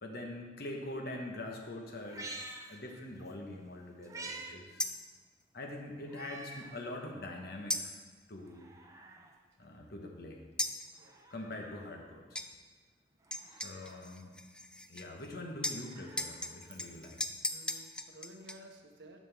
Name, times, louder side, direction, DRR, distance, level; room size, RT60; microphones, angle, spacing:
voice 1, 0.0-2.3 2.7-4.8 5.5-7.9 8.3-8.7 9.6-10.4 11.3-12.4 13.5-14.4 14.9-17.2, left 1 dB, 60° left, 2 dB, 1.2 m, -44 dB
Meow, 2.0-3.3 3.7-4.5 4.9-5.0 6.1-6.7 7.3-7.4 8.3-9.3 10.9-11.9 13.2-14.0 15.5-17.2 18.4-18.5, right 2 dB, 20° right, 0.7 m, -49 dB
sound 1, 4.8-5.1 7.7-8.1 10.6-10.9 12.4-12.5 13.3-15.3 15.6-18.5, left 1 dB, 5° left, 0.3 m, -38 dB
voice 2, 9.3-9.9 11.0-11.2 13.2-13.7 14.7-14.8 17.5-19.2, right 1 dB, 80° right, 4 dB, 1.0 m, -56 dB
11.0 x 6.4 x 3.5 m, 1.4 s
head